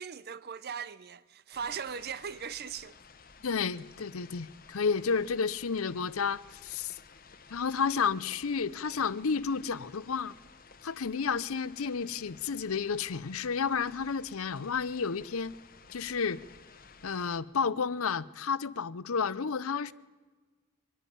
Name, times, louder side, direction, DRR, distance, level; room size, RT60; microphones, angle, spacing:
voice 1, 0.0-3.0, right 7 dB, 45° right, 0.6 m, -39 dB
sound 1, 1.5-17.4, left 5 dB, 40° left, 1.2 m, -55 dB
voice 2, 3.4-6.9 7.5-10.3 10.8-15.6 15.9-16.4 17.0-19.9, left 5 dB, 65° left, 0.6 m, -31 dB
24.0 x 11.0 x 9.9 m
head